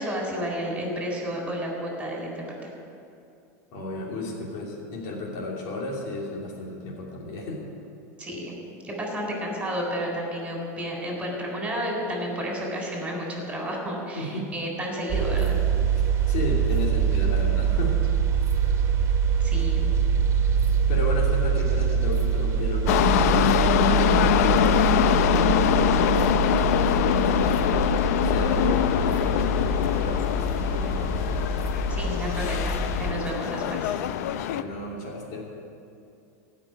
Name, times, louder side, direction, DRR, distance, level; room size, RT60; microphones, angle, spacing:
voice 1, 0.0-2.3 8.2-8.5 8.8-15.6 19.4-19.9 31.9-34.0, equal, 10° right, -1 dB, 3.9 m, -31 dB
voice 2, 3.7-7.7 14.1-14.5 15.9-18.0 20.9-31.3 34.5-35.4, left 2 dB, 55° left, -3 dB, 2.9 m, -33 dB
sound 1, 15.1-33.1, right 5 dB, 35° right, 1.9 m, -24 dB
sound 2, 22.9-34.6, left 10 dB, 75° left, 0.5 m, -24 dB
16.0 x 6.0 x 9.8 m, 2.6 s
supercardioid pair, 140°, 8 cm